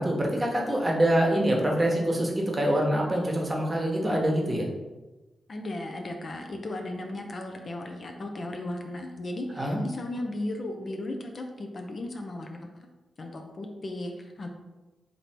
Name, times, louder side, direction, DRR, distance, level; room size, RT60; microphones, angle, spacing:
voice 1, 0.0-4.7 9.6-9.8, right 1 dB, 25° right, -1 dB, 1.0 m, -25 dB
voice 2, 5.5-12.9 13.2-14.5, left 1 dB, 50° left, 3 dB, 0.5 m, -36 dB
3.1 x 2.7 x 4.3 m, 1.2 s
supercardioid pair, 40°, 0 cm